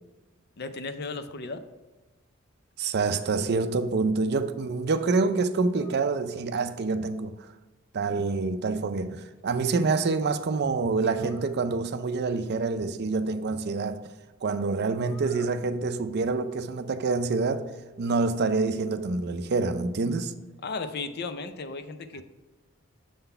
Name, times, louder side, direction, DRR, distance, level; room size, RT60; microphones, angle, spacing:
voice 1, 0.6-1.6 20.6-22.2, left 3 dB, 50° left, 0.5 m, -35 dB
voice 2, 2.8-7.3 7.9-14.0 14.4-17.7 18.0-20.3, right 4 dB, 50° right, 0.4 m, -27 dB
sound 1, 5.7-6.2 11.1-11.5 15.0-15.6 16.0-16.9 17.3-18.1, left 1 dB, 15° left, 1.7 m, -51 dB
6.9 x 3.9 x 5.4 m
head